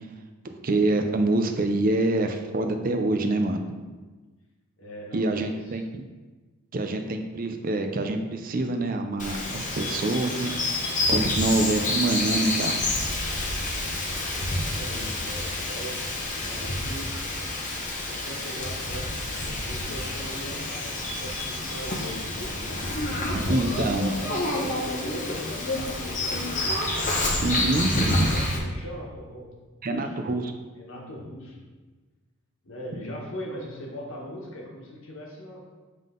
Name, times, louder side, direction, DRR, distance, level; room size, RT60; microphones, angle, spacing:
voice 1, 0.6-3.6 5.1-6.0 6.7-12.7 23.3-24.1 27.4-28.3 29.8-30.4, right 2 dB, 40° right, 6 dB, 0.5 m, -26 dB
voice 2, 4.8-5.8 14.3-16.0 16.3-17.2 18.0-22.3 23.1-26.5 26.8-27.1 27.9-29.5 29.8-30.3 30.8-31.6 32.6-35.6, equal, 60° left, -2 dB, 1.3 m, -39 dB
Bird vocalization bird call bird song, 9.2-28.6, left 2 dB, 35° left, 0.9 m, -28 dB
7.4 x 3.6 x 3.8 m, 1.3 s
head